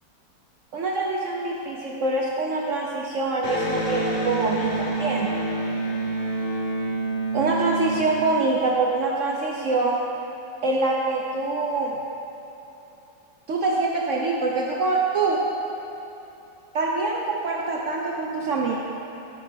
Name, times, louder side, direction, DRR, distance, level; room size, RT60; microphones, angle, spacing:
voice 1, 0.7-5.3 7.3-10.0 10.6-12.0 13.5-15.4 16.7-18.8, right 3 dB, 65° right, -2 dB, 0.7 m, -25 dB
Electric guitar, 3.4-8.9, right 2 dB, 45° left, 1.4 m, -28 dB
13.0 x 5.4 x 3.6 m, 2.9 s
omnidirectional pair, 2.0 m